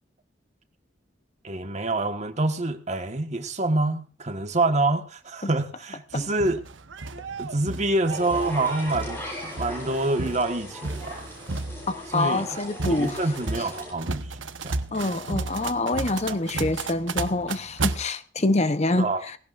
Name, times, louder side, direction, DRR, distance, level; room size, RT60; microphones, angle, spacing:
voice 1, 1.4-6.6 7.4-11.3 12.1-12.6 13.0-14.8 16.3-16.4 19.0-19.2, right 2 dB, 35° right, 1.5 m, -27 dB
sound 1, 6.1-18.0, right 3 dB, 85° right, 1.1 m, -33 dB
sound 2, 8.1-13.9, equal, 10° left, 7.7 m, -38 dB
voice 2, 11.9-13.2 13.6-13.7 14.9-19.4, left 2 dB, 35° left, 0.8 m, -26 dB
19.0 x 17.0 x 2.6 m
head